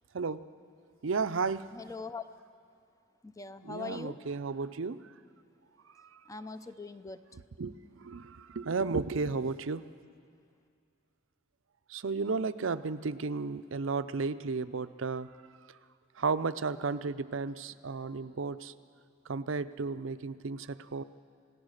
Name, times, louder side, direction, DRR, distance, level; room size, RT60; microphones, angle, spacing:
voice 1, 1.0-1.7 3.6-5.1 6.0-6.2 7.6-9.9 11.9-15.3 15.7-15.8 16.2-18.7 19.3-21.0, right 4 dB, 70° right, 13 dB, 0.6 m, -33 dB
voice 2, 1.7-2.2 3.2-4.2 6.3-7.2, left 4 dB, 15° left, 11 dB, 0.6 m, -41 dB
27.5 x 17.5 x 6.5 m, 2.4 s
head